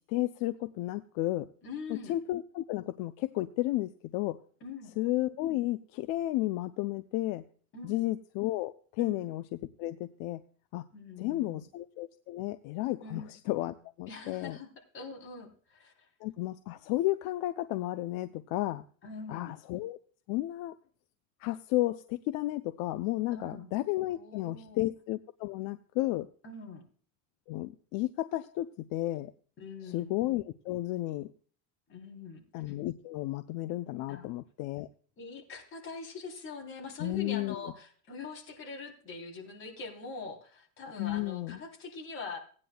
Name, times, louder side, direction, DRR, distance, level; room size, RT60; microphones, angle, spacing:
voice 1, 0.1-1.5 1.9-4.4 5.0-7.4 7.8-10.4 10.7-10.8 11.2-14.6 16.2-18.8 19.3-20.0 20.3-20.8 21.4-26.3 27.5-29.3 29.8-31.3 32.5-34.9 37.0-37.6 41.0-41.6, left 16 dB, 70° left, 11 dB, 0.6 m, -33 dB
voice 2, 1.6-2.2 4.6-4.9 7.7-8.0 9.0-9.2 10.9-11.7 13.0-13.3 14.1-15.9 19.0-19.6 23.3-23.7 24.1-24.8 26.4-26.8 29.6-30.1 31.9-32.4 34.1-34.3 35.2-42.4, left 4 dB, 35° left, 0 dB, 3.4 m, -43 dB
18.0 x 9.7 x 2.3 m, 0.44 s
cardioid pair, 155°, 35 cm